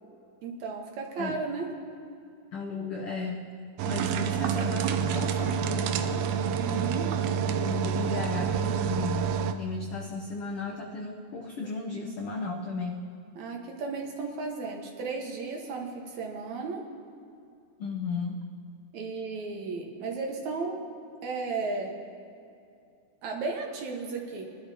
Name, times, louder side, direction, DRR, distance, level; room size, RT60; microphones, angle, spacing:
voice 1, 0.4-1.7 6.5-7.1 13.4-16.8 18.9-20.8 21.2-22.0 23.2-24.5, right 4 dB, 65° right, 1 dB, 2.5 m, -34 dB
voice 2, 2.5-3.5 3.8-6.4 7.4-9.3 9.6-13.0 17.8-18.4, left 3 dB, 85° left, 0 dB, 1.2 m, -35 dB
sound 1, 3.8-9.5, right 7 dB, 85° right, 1.6 m, -28 dB
22.0 x 12.0 x 2.8 m, 2.5 s
omnidirectional pair, 3.8 m